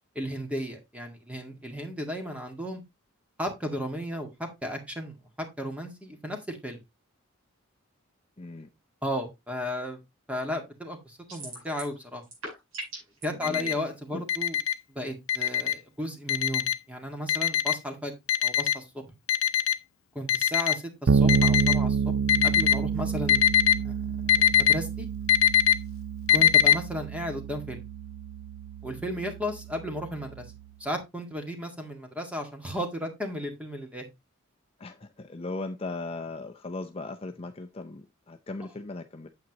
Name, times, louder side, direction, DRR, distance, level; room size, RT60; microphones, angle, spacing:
voice 1, 0.2-2.8 3.4-6.8 9.0-10.0 10.3-12.2 13.2-14.6 14.9-18.1 18.4-19.0 20.2-22.1 22.4-25.1 26.3-27.8 28.8-30.5 30.8-34.1, equal, 5° right, 1.8 m, -34 dB
voice 2, 8.4-8.7 13.3-13.7 14.1-14.2 34.8-39.3, left 2 dB, 30° left, 0.6 m, -38 dB
sound 1, 11.3-12.0 12.2-13.2, right 2 dB, 80° right, 5.4 m, -39 dB
Alarm, 13.4-13.7 14.3-14.7 15.3-15.7 16.3-16.7 17.3-17.7 18.3-18.8 19.3-19.8 20.3-20.8 21.3-21.8 22.3-22.8 23.3-23.7 24.3-24.7 25.3-25.7 26.3-26.7, left 10 dB, 75° left, 0.6 m, -21 dB
Bass guitar, 21.1-30.7, right 6 dB, 60° right, 0.5 m, -29 dB
8.8 x 7.7 x 2.9 m
head